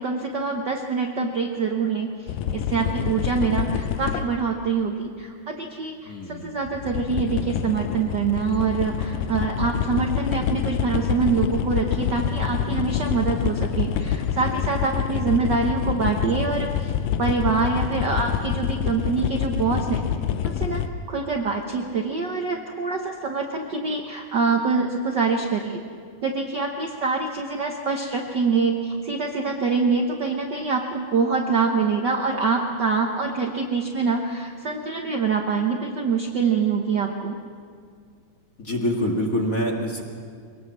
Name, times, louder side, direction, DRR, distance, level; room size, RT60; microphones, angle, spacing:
voice 1, 0.0-2.1 2.5-16.9 17.2-20.0 20.4-20.8 21.1-25.8 26.2-37.4, right 5 dB, 80° right, 2 dB, 0.9 m, -25 dB
sound 1, 2.3-4.4 6.4-20.9, left 9 dB, 85° left, 2.4 m, -27 dB
voice 2, 6.1-6.6 38.6-40.0, left 1 dB, 30° left, 0 dB, 2.0 m, -26 dB
22.5 x 18.5 x 7.4 m, 2.2 s
omnidirectional pair, 3.7 m